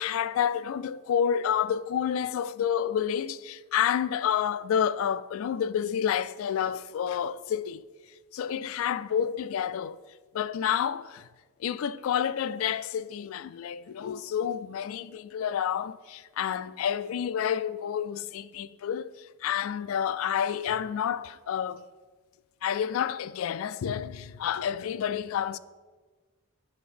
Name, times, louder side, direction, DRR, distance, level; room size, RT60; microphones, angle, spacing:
voice 1, 0.0-7.8 8.3-10.0 10.3-11.3 11.6-21.8 22.6-25.6, left 8 dB, 75° left, 0.3 m, -29 dB
10.0 x 4.3 x 4.9 m
head